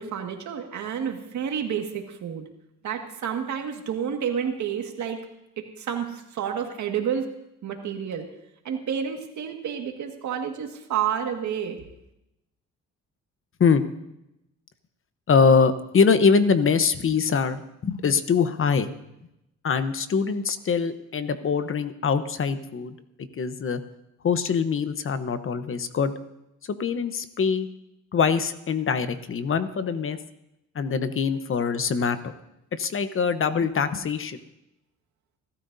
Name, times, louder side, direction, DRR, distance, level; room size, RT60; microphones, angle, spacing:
voice 1, 0.0-2.4 2.8-5.2 5.6-7.3 7.6-8.2 8.6-11.8, right 8 dB, 70° right, 4 dB, 1.9 m, -30 dB
voice 2, 15.3-18.9 19.6-23.0 23.4-23.8 24.2-26.1 26.8-27.7 28.1-30.2 30.7-32.3 32.8-34.4, left 5 dB, 45° left, 11 dB, 1.0 m, -23 dB
27.0 x 13.0 x 2.7 m, 0.87 s
cardioid pair, 90°, 30 cm